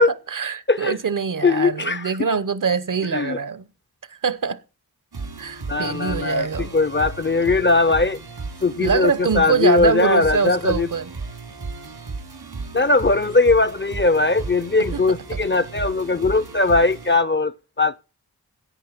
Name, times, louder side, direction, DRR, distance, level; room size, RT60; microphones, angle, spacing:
voice 1, 0.0-3.7 4.1-4.6 5.4-6.7 8.8-11.1 14.8-15.2, right 5 dB, 55° right, 0.9 m, -24 dB
voice 2, 1.4-2.3 3.1-3.4 5.7-8.2 8.6-10.9 12.7-18.0, left 3 dB, 30° left, 0.6 m, -20 dB
sound 1, 5.1-17.2, right 3 dB, 85° right, 3.1 m, -34 dB
16.0 x 5.6 x 5.8 m
cardioid pair, 45°, 38 cm